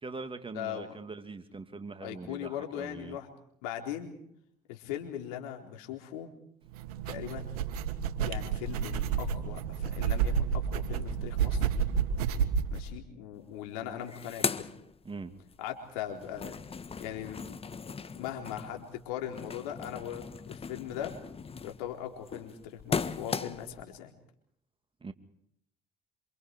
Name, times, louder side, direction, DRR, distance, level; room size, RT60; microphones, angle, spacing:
voice 1, 0.0-3.2 15.0-15.3 25.0-25.1, right 3 dB, 25° right, 2.7 m, -42 dB
voice 2, 0.5-1.0 2.0-3.3 3.6-4.2 4.7-6.3 7.1-7.4 8.2-11.6 12.7-14.7 15.6-16.5 17.0-17.4 17.8-21.1 21.6-24.1, left 10 dB, 80° left, 4.2 m, -39 dB
sound 1, 6.7-12.8, right 7 dB, 85° right, 1.8 m, -30 dB
sound 2, 13.4-13.5 13.8-15.6 15.9-23.8, left 5 dB, 30° left, 1.5 m, -38 dB
28.0 x 27.0 x 4.8 m
hypercardioid pair, 60°, 19 cm